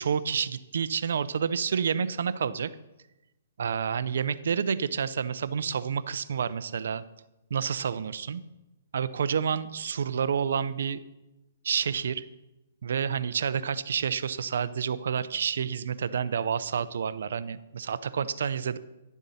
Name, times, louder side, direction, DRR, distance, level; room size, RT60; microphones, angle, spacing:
voice 1, 0.0-2.7 3.6-7.0 7.5-8.4 8.9-11.0 11.6-12.2 12.8-18.8, right 7 dB, 75° right, 15 dB, 0.5 m, -29 dB
11.5 x 7.2 x 4.2 m, 0.99 s
hypercardioid pair, 155°, 0 cm